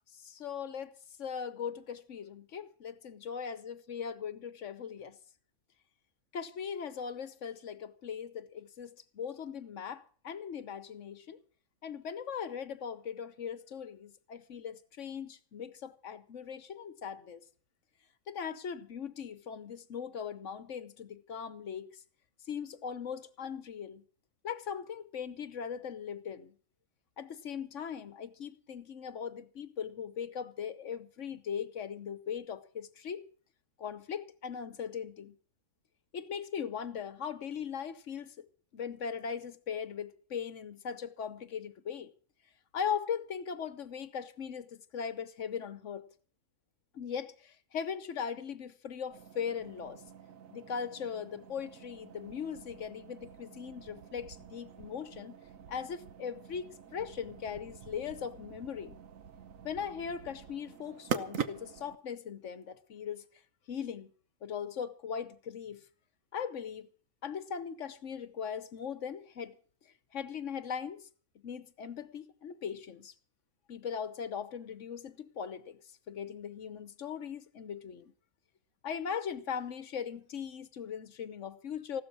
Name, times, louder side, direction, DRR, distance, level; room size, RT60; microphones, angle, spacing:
voice 1, 0.1-5.2 6.3-11.4 11.8-17.4 18.3-22.0 22.4-24.0 24.4-26.5 27.2-33.2 33.8-35.4 36.1-38.5 38.7-42.1 42.7-46.1 46.9-50.0 50.5-55.4 55.7-59.0 59.6-63.3 63.7-64.1 64.4-65.8 66.3-66.9 67.2-69.6 69.8-71.1 71.4-73.1 73.7-75.8 76.1-78.1 78.8-82.0, left 7 dB, 65° left, 1.2 m, -39 dB
sound 1, 49.1-62.0, right 8 dB, 75° right, 1.3 m, -45 dB
15.5 x 12.5 x 6.0 m
omnidirectional pair, 1.4 m